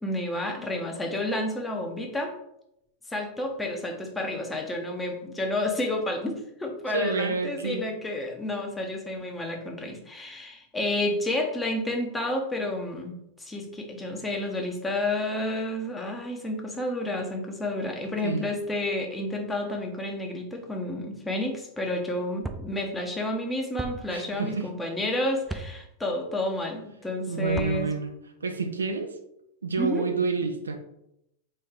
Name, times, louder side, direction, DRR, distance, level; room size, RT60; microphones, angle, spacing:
voice 1, 0.0-2.3 3.1-27.9 29.8-30.1, left 1 dB, 10° left, 2 dB, 0.8 m, -30 dB
voice 2, 6.9-7.8 18.2-18.5 24.1-24.7 27.3-28.1 28.4-29.1 29.6-30.8, right 4 dB, 75° right, 6 dB, 0.5 m, -28 dB
sound 1, 22.4-22.6 23.8-23.9 25.5-25.7 27.4-27.8, right 3 dB, 10° right, 0.4 m, -34 dB
4.3 x 3.3 x 3.7 m, 0.80 s
figure-of-eight pair, 90°, 0 cm